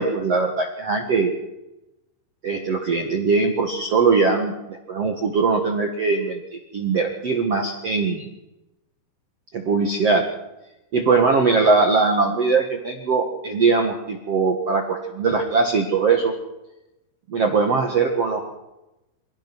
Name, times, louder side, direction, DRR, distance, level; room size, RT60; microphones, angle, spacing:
voice 1, 0.0-1.3 2.4-6.4 6.7-8.3 9.5-10.2 10.9-16.3 17.3-18.4, right 4 dB, 60° right, 3 dB, 1.7 m, -21 dB
27.0 x 16.5 x 6.3 m, 0.96 s
omnidirectional pair, 5.6 m